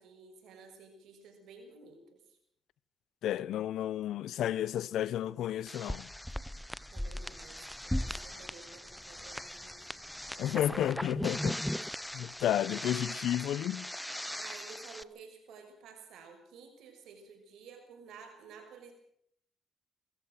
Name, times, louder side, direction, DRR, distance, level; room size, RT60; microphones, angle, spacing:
voice 1, 0.0-2.4 6.9-10.9 11.4-11.7 14.4-18.9, right 5 dB, 80° right, 6.2 m, -53 dB
voice 2, 3.2-6.1 10.4-11.7 12.1-13.9, left 11 dB, 80° left, 0.8 m, -32 dB
sound 1, 5.7-15.0, equal, 5° left, 0.7 m, -38 dB
24.0 x 14.5 x 7.7 m
cardioid pair, 90°, 0 cm